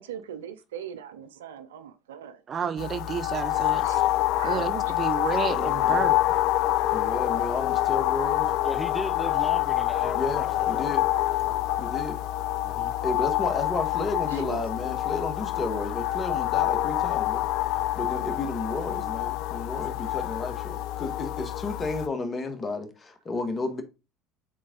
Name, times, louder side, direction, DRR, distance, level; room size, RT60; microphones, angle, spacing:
voice 1, 0.0-2.4 3.8-4.0 4.3-4.9 7.0-7.7 14.3-14.6, right 9 dB, 85° right, 0.6 m, -41 dB
voice 2, 2.5-4.0 4.4-6.2, right 7 dB, 40° right, 0.8 m, -31 dB
sound 1, 2.8-22.1, left 14 dB, 65° left, 0.4 m, -27 dB
voice 3, 5.5-6.1 6.9-8.5 10.1-11.1 11.8-12.2 13.0-17.5 17.9-23.8, left 3 dB, 30° left, 1.6 m, -32 dB
voice 4, 8.6-10.9 12.6-12.9, left 1 dB, 5° left, 0.5 m, -36 dB
7.5 x 3.9 x 3.9 m
hypercardioid pair, 75°, 0 cm